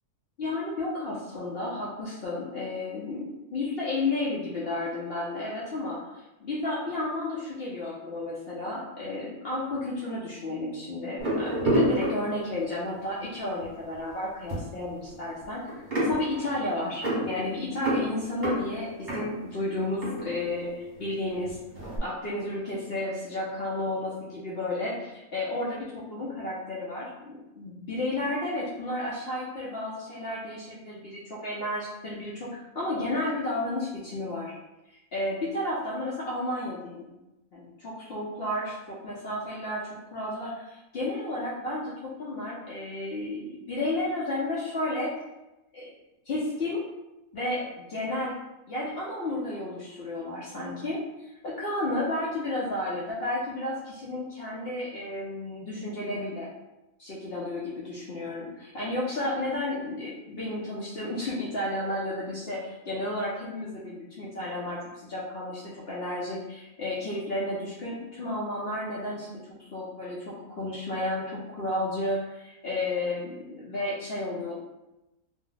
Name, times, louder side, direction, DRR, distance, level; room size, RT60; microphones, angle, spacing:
voice 1, 0.4-21.6 22.0-34.5 34.9-37.1 37.5-40.5 40.9-45.1 45.7-45.9 46.3-46.8 47.3-48.4 48.7-56.5 57.0-69.3 69.6-74.5, left 1 dB, 60° left, -7 dB, 0.6 m, -32 dB
sound 1, 11.2-12.8 13.4-13.6 13.9-21.1 21.3-22.0, right 1 dB, 35° right, 1.1 m, -29 dB
2.6 x 2.1 x 3.8 m, 0.98 s
omnidirectional pair, 1.6 m